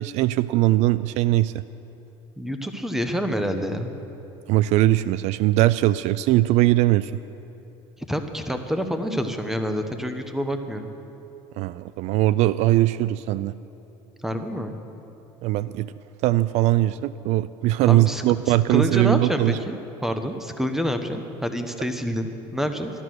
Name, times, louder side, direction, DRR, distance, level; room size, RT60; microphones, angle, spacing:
voice 1, 0.0-1.6 4.5-7.1 11.6-13.5 15.4-15.9 16.2-19.6, right 16 dB, 65° right, 16 dB, 0.4 m, -20 dB
voice 2, 2.4-4.0 8.1-10.9 14.2-14.8 17.9-22.9, equal, 5° right, 7 dB, 1.2 m, -27 dB
13.5 x 12.5 x 6.3 m, 2.9 s
supercardioid pair, 100°, 13 cm